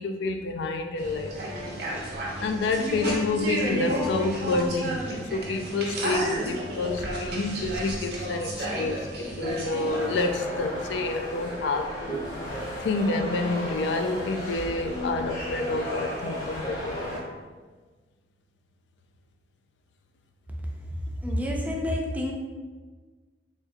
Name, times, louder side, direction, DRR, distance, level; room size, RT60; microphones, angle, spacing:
voice 1, 0.0-1.3 2.4-12.2 12.8-17.3, left 3 dB, 80° left, 6 dB, 0.3 m, -28 dB
sound 1, 1.0-10.2, right 1 dB, 65° right, 0.8 m, -32 dB
sound 2, 9.8-17.2, equal, 45° left, 1.1 m, -34 dB
voice 2, 21.2-22.3, left 1 dB, 10° right, -1 dB, 0.5 m, -28 dB
3.7 x 3.5 x 2.6 m, 1.4 s
head